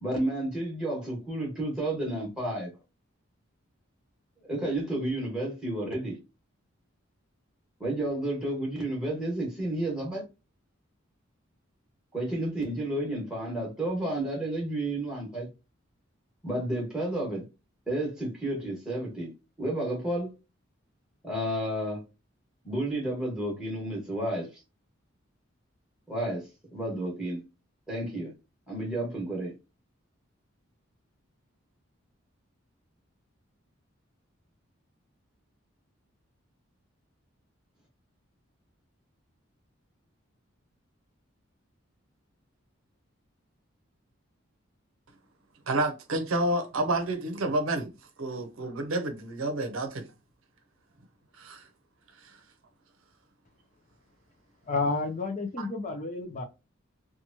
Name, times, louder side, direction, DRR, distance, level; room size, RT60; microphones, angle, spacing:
voice 1, 0.0-2.7 4.5-6.2 7.8-10.2 12.1-15.5 16.4-17.5 17.9-19.3 19.6-20.3 21.2-22.0 22.6-24.5 26.1-27.4 27.9-28.3 28.7-29.5, right 1 dB, 5° right, 1.2 m, -31 dB
voice 2, 45.7-47.9 48.2-50.0 51.4-51.7 55.6-55.7, right 2 dB, 80° right, 0.6 m, -29 dB
voice 3, 54.6-56.4, left 3 dB, 35° left, 0.4 m, -30 dB
2.9 x 2.2 x 2.7 m
head